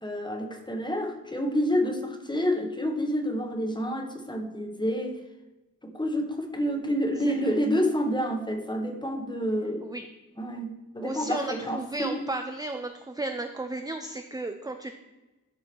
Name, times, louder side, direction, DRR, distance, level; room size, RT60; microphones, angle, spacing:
voice 1, 0.0-5.2 5.8-9.9 10.4-12.2, equal, 15° left, 4 dB, 1.1 m, -28 dB
voice 2, 11.0-14.9, right 2 dB, 10° right, 6 dB, 0.4 m, -34 dB
13.0 x 4.8 x 4.5 m, 1.1 s
wide cardioid pair, 150°, 35 cm